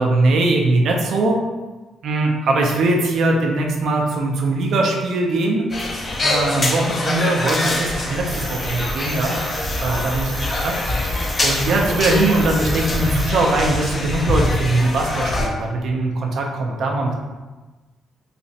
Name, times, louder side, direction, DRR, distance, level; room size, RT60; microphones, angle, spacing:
voice 1, 0.0-1.4 2.0-5.7 6.2-10.3 10.6-10.7 11.4-17.1, right 2 dB, 70° right, 1 dB, 0.6 m, -20 dB
sound 1, 5.7-15.5, left 2 dB, 35° left, 0.6 m, -24 dB
Cricket, 8.3-13.3, right 3 dB, 25° right, 0.3 m, -36 dB
3.3 x 3.0 x 2.8 m, 1.2 s
cardioid pair, 90°, 0 cm